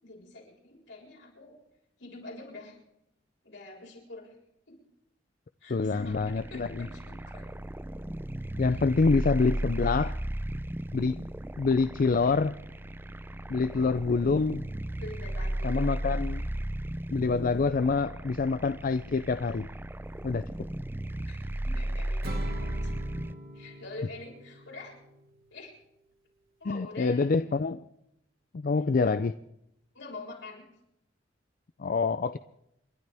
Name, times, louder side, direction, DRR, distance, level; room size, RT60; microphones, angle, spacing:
voice 1, 0.0-1.6 2.0-2.8 3.4-4.3 4.7-4.8 5.6-7.5 8.6-8.8 15.0-16.0 21.3-22.9 23.5-25.0 25.5-25.7 26.6-27.3 28.9-29.2 29.9-30.7, left 2 dB, 75° left, -2 dB, 7.1 m, -45 dB
voice 2, 5.7-6.9 8.6-10.2 10.9-11.2 11.6-12.6 13.5-14.7 15.6-16.5 17.1-19.7 20.2-20.4 26.6-27.8 28.5-29.3 31.8-32.4, left 4 dB, 50° left, 12 dB, 0.5 m, -26 dB
sound 1, 6.0-23.3, right 1 dB, 10° right, 0.5 m, -35 dB
Acoustic guitar / Strum, 22.2-25.6, right 1 dB, 55° right, 2.5 m, -43 dB
29.5 x 12.0 x 3.5 m, 0.82 s
head